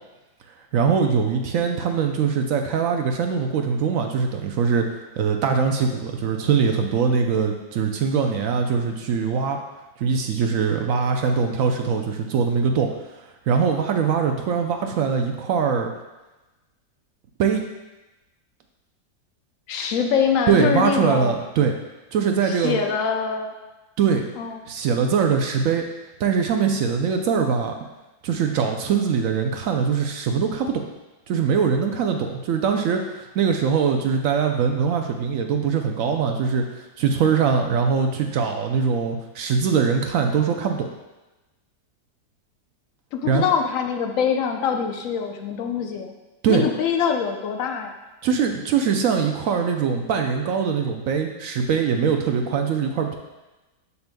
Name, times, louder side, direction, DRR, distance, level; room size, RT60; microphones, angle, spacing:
voice 1, 0.7-4.9 5.2-9.6 10.0-12.9 13.5-15.9 17.4-17.6 20.5-21.7 22.1-22.8 24.0-24.3 24.7-25.8 26.2-27.7 28.2-30.9 31.3-36.6 37.0-40.9 43.2-43.5 46.4-46.6 48.2-53.2, right 6 dB, 70° right, 4 dB, 0.8 m, -22 dB
voice 2, 19.7-21.3 22.4-23.5 24.4-24.6 43.1-46.1 46.5-48.0, left 7 dB, 65° left, 4 dB, 0.9 m, -24 dB
6.9 x 6.6 x 2.2 m, 1.1 s
omnidirectional pair, 1.8 m